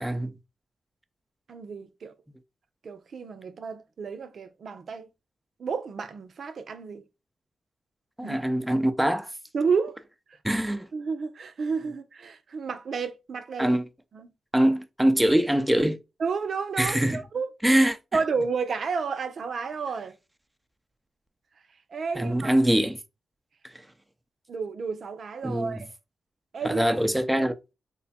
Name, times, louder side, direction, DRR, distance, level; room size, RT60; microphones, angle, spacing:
voice 1, 0.0-0.3 8.2-9.3 10.4-10.9 13.6-13.9 14.5-16.0 16.8-17.2 17.6-18.0 22.1-23.0 25.4-25.8 26.6-27.7, right 1 dB, 10° right, 0.6 m, -23 dB
voice 2, 1.5-2.1 2.8-5.0 5.6-7.0 8.2-8.4 9.5-10.0 10.9-13.7 14.1-14.3 16.2-17.5 18.1-20.1 21.9-22.6 24.5-25.9 26.5-26.8, right 5 dB, 65° right, 0.6 m, -31 dB
3.3 x 2.2 x 4.1 m
supercardioid pair, 45°, 0 cm